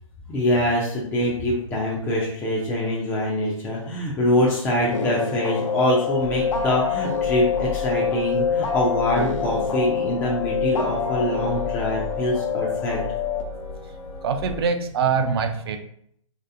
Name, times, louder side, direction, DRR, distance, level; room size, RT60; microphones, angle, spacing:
voice 1, 0.3-13.0, left 1 dB, 10° left, -4 dB, 0.4 m, -24 dB
sound 1, 4.9-13.4, left 6 dB, 65° left, 0.6 m, -26 dB
sound 2, 6.2-14.7, left 4 dB, 90° left, 1.2 m, -35 dB
voice 2, 14.2-15.8, right 6 dB, 50° right, 7 dB, 0.4 m, -23 dB
3.1 x 2.8 x 2.5 m, 0.68 s
figure-of-eight pair, 130°, 17 cm